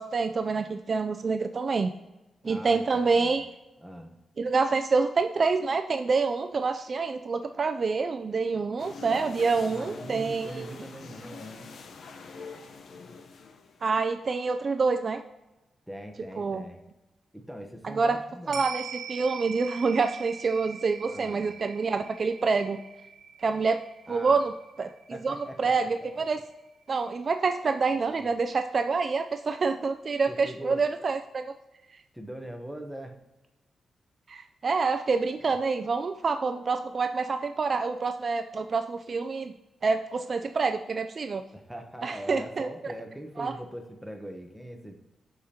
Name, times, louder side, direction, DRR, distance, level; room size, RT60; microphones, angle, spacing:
voice 1, 0.0-1.9 2.4-3.5 4.4-10.7 13.8-15.2 16.4-16.6 17.8-18.2 18.5-22.8 23.4-23.8 24.1-24.5 24.8-26.4 26.9-31.5 34.3-39.5 39.8-41.4 42.0-42.7 43.4-43.5, right 4 dB, 45° right, 8 dB, 0.4 m, -27 dB
voice 2, 2.4-3.4 3.8-4.1 9.6-11.7 15.9-16.8 17.3-18.6 21.0-21.5 24.1-24.4 25.1-26.2 27.9-28.3 30.3-30.8 32.1-33.2 35.4-35.6 41.5-44.9, equal, ahead, 4 dB, 0.9 m, -42 dB
sound 1, 8.8-13.9, left 4 dB, 70° left, 0.8 m, -44 dB
sound 2, 18.5-27.1 27.4-27.5, right 7 dB, 75° right, 0.7 m, -43 dB
12.5 x 5.0 x 2.8 m, 1.0 s
cardioid pair, 100°, 0 cm